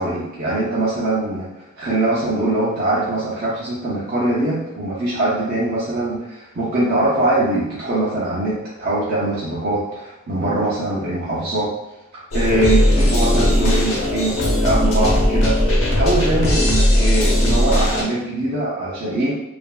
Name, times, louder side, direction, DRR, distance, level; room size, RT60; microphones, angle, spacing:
voice 1, 0.0-1.5 1.8-11.7 12.1-19.3, right 2 dB, 50° right, -7 dB, 0.5 m, -22 dB
sound 1, 12.3-18.0, left 1 dB, 85° left, 0.9 m, -17 dB
2.9 x 2.5 x 2.3 m, 0.94 s
head